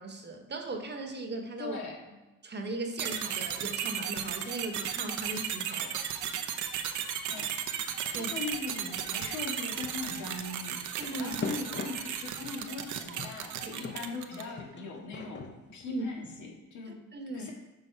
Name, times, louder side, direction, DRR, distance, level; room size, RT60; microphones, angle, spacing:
voice 1, 0.0-1.8 2.4-5.9 8.1-8.3 11.0-11.4 15.9-16.1 16.9-17.5, right 2 dB, 35° right, 4 dB, 1.1 m, -38 dB
voice 2, 1.6-2.2 7.3-7.5 8.1-15.5 15.7-17.0 17.3-17.5, left 4 dB, 75° left, 0 dB, 1.9 m, -40 dB
sound 1, 3.0-14.6, right 8 dB, 75° right, 0.8 m, -35 dB
sound 2, 10.8-12.7 13.2-16.5, left 3 dB, 35° left, 0.9 m, -42 dB
6.6 x 5.0 x 4.6 m, 1.1 s
cardioid pair, 90°, 30 cm